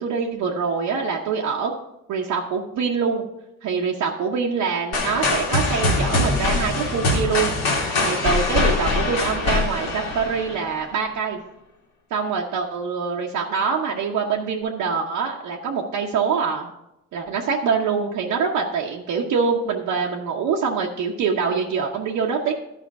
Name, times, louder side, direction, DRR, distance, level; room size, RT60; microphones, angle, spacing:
voice 1, 0.0-1.7 2.1-3.2 3.6-7.5 8.0-11.4 12.1-16.7 17.1-22.5, right 5 dB, 85° right, -2 dB, 0.9 m, -24 dB
sound 1, 4.9-10.8, left 2 dB, 80° left, 2.1 m, -23 dB
11.5 x 5.1 x 4.7 m, 0.89 s
cardioid pair, 90°, 30 cm